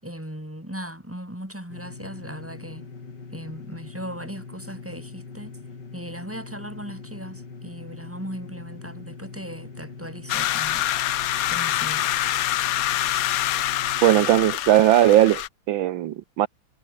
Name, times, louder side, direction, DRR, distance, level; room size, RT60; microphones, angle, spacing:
voice 1, 0.0-2.9 3.3-5.6 5.9-10.9 11.5-12.1, equal, 5° right, 6.3 m, -38 dB
sound 1, 1.7-14.6, left 4 dB, 55° left, 3.9 m, -41 dB
sound 2, 10.3-15.5, left 13 dB, 70° left, 0.8 m, -25 dB
voice 2, 14.0-16.5, right 13 dB, 75° right, 1.5 m, -18 dB
omnidirectional pair, 2.2 m